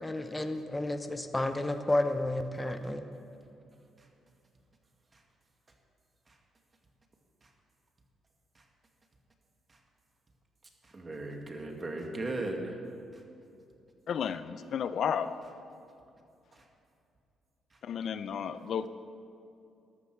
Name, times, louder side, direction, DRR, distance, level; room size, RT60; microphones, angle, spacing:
voice 1, 0.0-3.1, left 1 dB, 15° left, 8 dB, 0.7 m, -31 dB
voice 2, 10.8-12.8 13.1-13.2 16.5-16.6, right 2 dB, 30° right, 2 dB, 1.8 m, -38 dB
voice 3, 14.1-15.3 17.8-18.9, left 8 dB, 65° left, 13 dB, 0.5 m, -32 dB
13.0 x 12.0 x 4.6 m, 2.6 s
cardioid pair, 90°, 0 cm